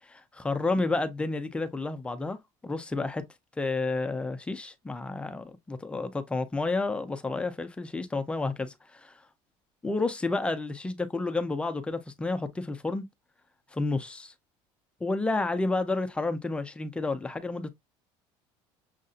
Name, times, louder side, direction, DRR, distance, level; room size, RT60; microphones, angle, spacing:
voice 1, 0.1-2.4 2.6-3.2 3.6-9.1 9.8-13.0 13.7-14.3 15.0-17.7, left 3 dB, 10° left, 0.5 m, -30 dB
6.5 x 2.6 x 2.4 m
cardioid pair, 155°, 11 cm